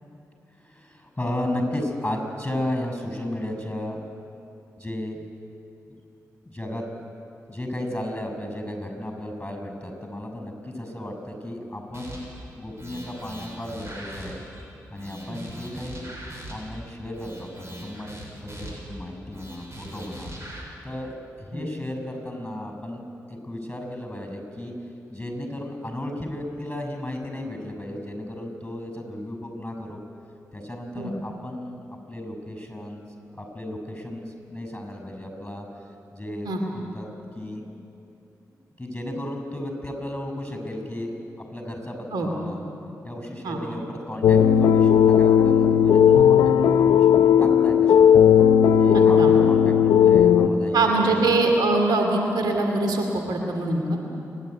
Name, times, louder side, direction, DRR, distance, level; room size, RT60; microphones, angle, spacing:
voice 1, 0.6-4.0 4.8-5.2 6.4-6.8 7.5-12.2 12.6-14.4 14.9-16.1 16.5-17.5 17.8-20.3 20.8-23.0 23.3-24.7 25.1-30.0 30.5-31.8 32.1-33.0 33.3-35.6 36.1-37.1 37.3-37.6 38.8-41.2 41.5-42.6 43.0-48.1 48.8-51.3, left 1 dB, 15° left, 4 dB, 6.7 m, -34 dB
sound 1, 11.9-12.4 12.8-14.6 15.0-16.8 17.1-19.0 19.3-20.6, right 1 dB, 40° right, 7.3 m, -40 dB
sound 2, 44.2-50.5, left 8 dB, 85° left, 0.7 m, -16 dB
voice 2, 50.7-54.0, right 2 dB, 85° right, 2 dB, 2.5 m, -23 dB
27.0 x 11.5 x 9.5 m, 2.7 s
supercardioid pair, 40°, 7 cm